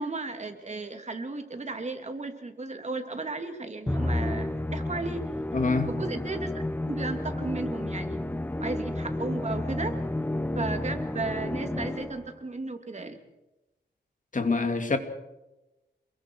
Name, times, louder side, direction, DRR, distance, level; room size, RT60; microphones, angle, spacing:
voice 1, 0.0-5.2 5.9-8.2 8.6-9.9 10.6-13.2, right 3 dB, 35° right, 2.7 m, -34 dB
Musical instrument, 3.9-12.3, left 1 dB, 10° left, 0.9 m, -31 dB
voice 2, 5.5-5.9 14.3-15.0, left 3 dB, 45° left, 2.6 m, -25 dB
28.0 x 22.0 x 4.7 m
wide cardioid pair, 95°, 19 cm